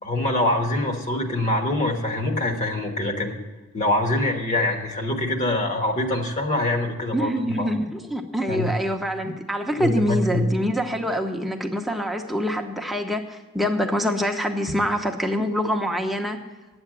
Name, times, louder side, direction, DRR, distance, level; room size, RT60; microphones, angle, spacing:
voice 1, 0.0-3.3 3.7-7.7 8.5-8.7 9.8-10.5, left 1 dB, 35° left, 3 dB, 1.3 m, -24 dB
voice 2, 7.1-16.4, equal, ahead, 2 dB, 0.9 m, -25 dB
9.5 x 7.9 x 7.5 m, 1.2 s
head